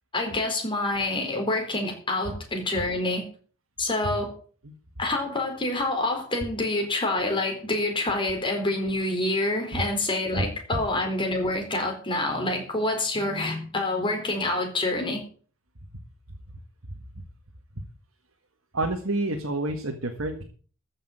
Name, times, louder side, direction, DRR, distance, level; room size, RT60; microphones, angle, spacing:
voice 1, 0.1-3.3 3.8-4.3 5.0-15.2, left 2 dB, 25° left, 2 dB, 4.2 m, -27 dB
voice 2, 18.7-20.4, right 2 dB, 75° right, 2 dB, 1.8 m, -28 dB
14.5 x 6.6 x 7.8 m, 0.42 s
head